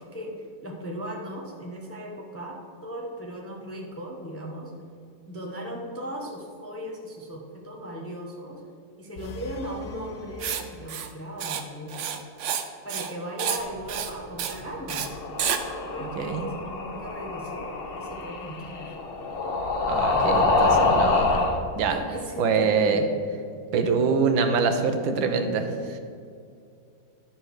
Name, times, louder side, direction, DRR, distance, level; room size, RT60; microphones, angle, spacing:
voice 1, 0.0-4.7 5.3-8.6 9.0-12.1 12.8-15.1 15.9-17.7 18.0-19.0 21.9-23.1, equal, 10° left, -1 dB, 0.7 m, -37 dB
sound 1, 9.2-11.4, left 3 dB, 75° left, 1.4 m, -43 dB
Writing, 10.4-10.6 10.9-11.1 11.4-11.6 11.9-12.6 12.9-13.1 13.4-13.6 13.9-14.1 14.4-14.6 14.9-15.1 15.4-15.6, right 8 dB, 70° right, 0.7 m, -29 dB
sound 2, 14.9-21.6, left 3 dB, 50° left, 0.7 m, -26 dB
voice 2, 16.0-16.5 19.9-21.5 21.8-22.0 22.4-23.0 23.7-26.0, right 5 dB, 90° right, 6 dB, 1.6 m, -24 dB
11.0 x 4.4 x 6.4 m, 2.4 s
omnidirectional pair, 2.0 m